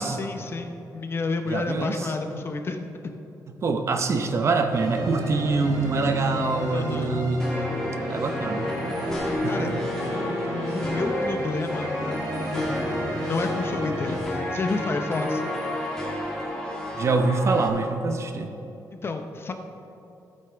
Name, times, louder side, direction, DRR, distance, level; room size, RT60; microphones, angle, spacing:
voice 1, 0.0-3.2 6.7-7.2 9.5-9.7 10.7-12.3 12.5-15.5 19.0-19.5, left 3 dB, 35° left, 6 dB, 0.7 m, -30 dB
voice 2, 1.5-2.0 3.5-7.8 8.1-8.7 9.4-9.8 10.3-10.4 16.9-18.6, right 3 dB, 45° right, 6 dB, 0.7 m, -25 dB
sound 1, 4.7-14.2, right 1 dB, 65° right, 2.7 m, -32 dB
sound 2, 7.4-17.7, left 1 dB, 10° left, 1.9 m, -31 dB
14.5 x 8.6 x 3.5 m, 2.8 s
cardioid pair, 135°, 7 cm